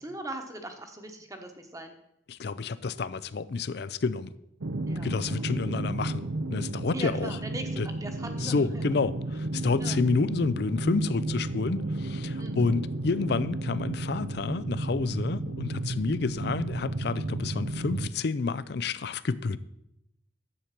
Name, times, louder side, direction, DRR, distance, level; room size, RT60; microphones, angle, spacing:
voice 1, 0.0-1.9 4.9-5.4 6.9-8.9 9.8-10.0 12.4-12.7, right 1 dB, 15° right, 1.2 m, -40 dB
voice 2, 2.3-4.3 5.0-6.2 6.5-7.4 7.8-7.9 8.4-19.6, left 4 dB, 55° left, 0.4 m, -29 dB
sound 1, 4.6-18.1, right 2 dB, 80° right, 0.7 m, -33 dB
10.5 x 8.0 x 5.9 m
head